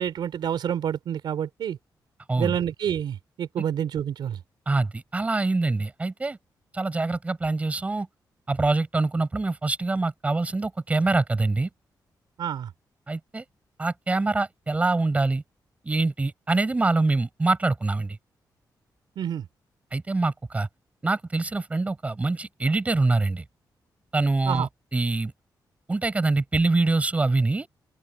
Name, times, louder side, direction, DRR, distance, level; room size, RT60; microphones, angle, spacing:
voice 1, 0.0-1.8 2.4-4.4 12.4-12.7 19.2-19.5 24.5-24.7, right 9 dB, 80° right, 3.7 m, -28 dB
voice 2, 4.7-6.4 6.7-8.1 8.5-11.7 13.1-13.4 13.8-15.4 15.8-18.2 19.9-20.7 21.0-23.4 24.1-25.3 25.9-27.7, right 3 dB, 20° right, 5.7 m, -24 dB
open air
wide cardioid pair, 165°, 8 cm